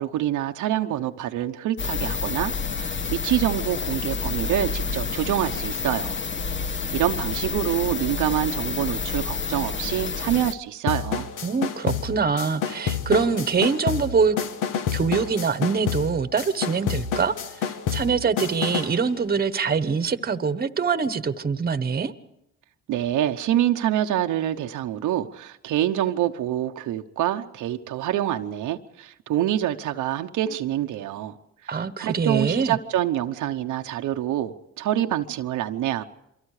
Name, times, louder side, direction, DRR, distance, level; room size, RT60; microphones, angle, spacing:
voice 1, 0.0-6.2 6.9-11.3 22.9-31.4 31.7-36.0, right 12 dB, 85° right, 5 dB, 1.0 m, -26 dB
sound 1, 1.8-10.5, left 5 dB, 40° left, 1.1 m, -29 dB
sound 2, 10.9-19.0, left 7 dB, 85° left, 1.4 m, -29 dB
voice 2, 11.4-14.4 14.9-22.1 31.7-32.8, right 5 dB, 30° right, 12 dB, 1.2 m, -24 dB
28.0 x 24.0 x 4.9 m, 0.81 s
cardioid pair, 90°, 30 cm